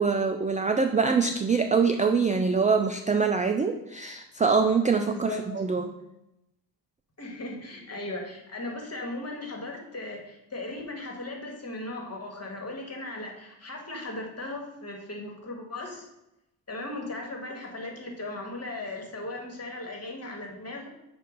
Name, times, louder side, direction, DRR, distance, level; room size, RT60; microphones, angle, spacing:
voice 1, 0.0-5.9, right 5 dB, 20° right, 5 dB, 0.3 m, -24 dB
voice 2, 5.1-5.4 7.2-16.1 16.7-20.9, left 2 dB, 35° left, 1 dB, 1.6 m, -37 dB
7.5 x 2.7 x 5.2 m, 0.89 s
cardioid pair, 80°, 45 cm